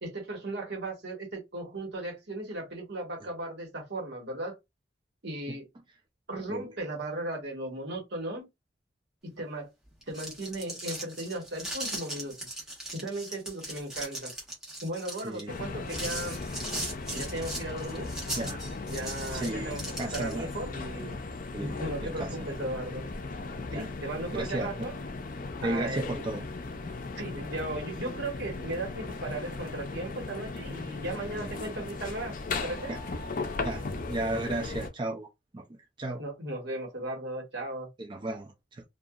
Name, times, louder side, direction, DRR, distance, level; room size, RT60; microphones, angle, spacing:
voice 1, 0.0-4.5 5.2-5.7 6.3-8.5 9.2-9.7 10.1-12.4 12.9-14.3 14.8-16.4 17.1-18.2 18.9-21.2 21.6-23.0 23.7-25.0 25.6-26.2 26.8-26.9 27.2-32.9 36.2-37.9, right 2 dB, 65° right, 1.2 m, -36 dB
sound 1, 9.9-20.5, right 1 dB, 5° right, 1.1 m, -38 dB
voice 2, 15.2-15.6 18.4-18.6 19.3-20.5 21.5-21.8 22.2-22.5 23.7-23.9 24.3-24.9 25.6-26.5 31.2-31.5 32.9-33.0 33.6-35.6 36.0-36.2 38.0-38.8, right 2 dB, 25° right, 0.4 m, -34 dB
sound 2, 15.5-34.9, left 3 dB, 50° left, 0.5 m, -37 dB
2.7 x 2.4 x 2.4 m
head